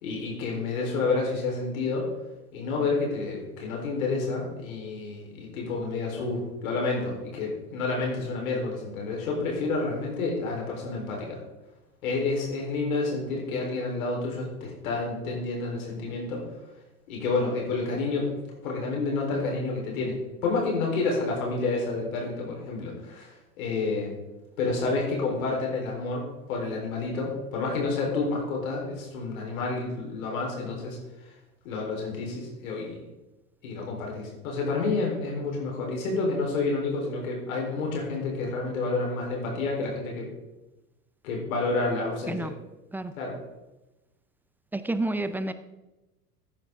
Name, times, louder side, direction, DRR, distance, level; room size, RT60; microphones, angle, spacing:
voice 1, 0.0-2.1 2.5-11.4 12.0-16.5 17.1-24.1 24.6-31.0 31.6-33.0 33.6-40.3 41.2-42.5 43.2-43.4, left 3 dB, 60° left, -1 dB, 4.2 m, -29 dB
voice 2, 44.7-45.5, right 2 dB, 5° right, 12 dB, 0.5 m, -29 dB
15.5 x 10.5 x 3.7 m, 1.0 s
figure-of-eight pair, 85°, 46 cm